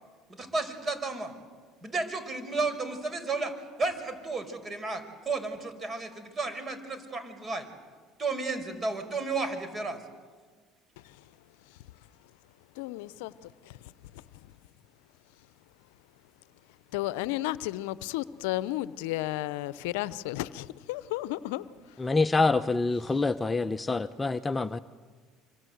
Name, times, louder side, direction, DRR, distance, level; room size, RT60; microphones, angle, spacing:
voice 1, 0.3-1.3 1.8-7.7 8.2-10.0, right 3 dB, 35° right, 10 dB, 5.0 m, -33 dB
voice 2, 12.7-14.2 16.9-22.0, left 16 dB, 80° left, 17 dB, 0.7 m, -34 dB
voice 3, 22.0-24.8, left 3 dB, 15° left, 10 dB, 0.8 m, -26 dB
26.0 x 25.5 x 8.0 m, 1.5 s
hypercardioid pair, 75°, 0 cm